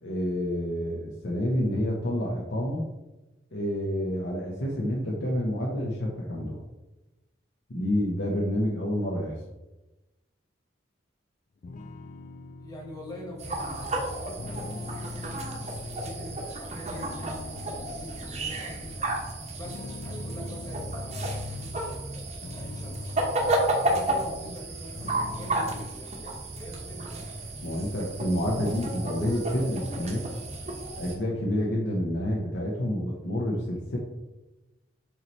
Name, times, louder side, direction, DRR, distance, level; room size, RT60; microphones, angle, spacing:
voice 1, 0.0-2.9 3.5-6.6 7.7-9.3 27.6-30.3 31.0-34.0, equal, 60° left, -2 dB, 0.8 m, -28 dB
sound 1, 11.6-16.5 16.9-19.2 19.7-21.8 22.2-24.7 25.0-25.9, left 3 dB, 40° left, 0.3 m, -43 dB
voice 2, 12.6-15.0 15.5-23.2 23.8-27.3, equal, 20° left, -3 dB, 1.4 m, -44 dB
sound 2, 13.4-31.2, right 1 dB, 35° right, 0.9 m, -32 dB
7.3 x 3.1 x 4.1 m, 1.1 s
head